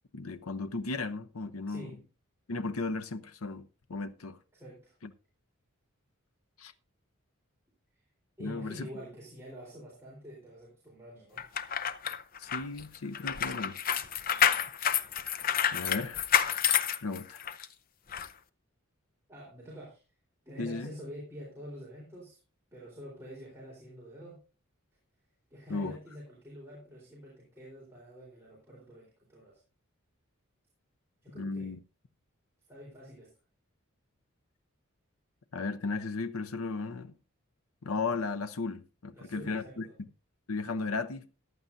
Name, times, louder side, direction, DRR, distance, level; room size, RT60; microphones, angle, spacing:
voice 1, 0.1-1.9 2.5-4.4 5.0-5.1 6.6-6.7 8.4-8.9 12.4-13.8 15.7-16.3 17.0-17.4 20.6-20.9 25.7-25.9 31.3-31.8 35.5-37.1 37.8-39.9 40.5-41.3, left 3 dB, 90° left, 0.7 m, -35 dB
voice 2, 1.7-2.0 4.5-5.0 8.4-11.5 19.3-20.0 20.5-22.4 22.7-24.4 25.5-29.6 31.2-31.7 32.7-33.3 39.1-39.9, equal, 10° right, 3.9 m, -47 dB
sound 1, 11.4-17.7 18.1-18.3, left 9 dB, 40° left, 0.7 m, -29 dB
14.5 x 11.0 x 2.7 m
head